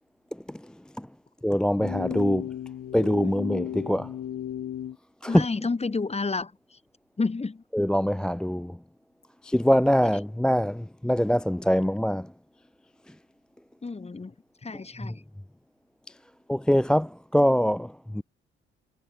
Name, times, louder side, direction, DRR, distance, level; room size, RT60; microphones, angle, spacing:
voice 1, 1.4-2.5 2.9-4.1 5.2-5.5 7.7-8.8 9.4-12.3 15.0-15.1 16.5-18.2, equal, 5° left, 0.4 m, -24 dB
sound 1, 1.7-5.0, left 10 dB, 50° left, 1.6 m, -35 dB
voice 2, 5.3-6.5 7.2-7.6 13.8-14.3 14.6-15.1, left 4 dB, 20° left, 1.6 m, -29 dB
figure-of-eight pair, 45°, 31 cm